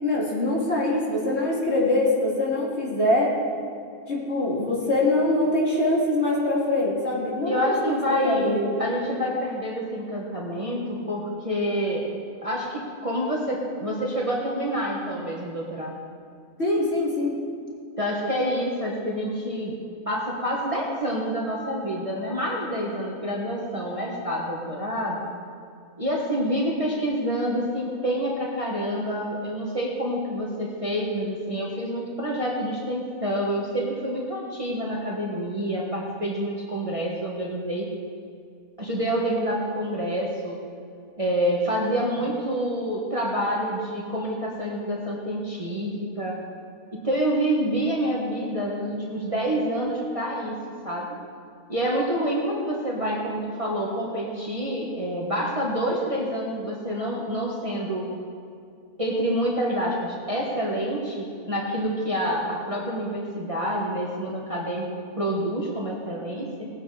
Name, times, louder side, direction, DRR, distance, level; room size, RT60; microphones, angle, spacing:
voice 1, 0.0-3.3 4.1-8.0 8.2-8.7 16.6-17.3, left 1 dB, 45° left, -6 dB, 3.2 m, -23 dB
voice 2, 7.4-12.1 12.4-15.9 18.0-19.7 20.1-25.2 26.0-37.9 38.8-40.6 41.2-46.4 47.0-50.6 50.8-51.1 51.7-58.1 59.0-64.9 65.2-66.7, equal, 25° right, -3 dB, 1.5 m, -27 dB
18.5 x 8.4 x 5.0 m, 2.3 s
omnidirectional pair, 1.6 m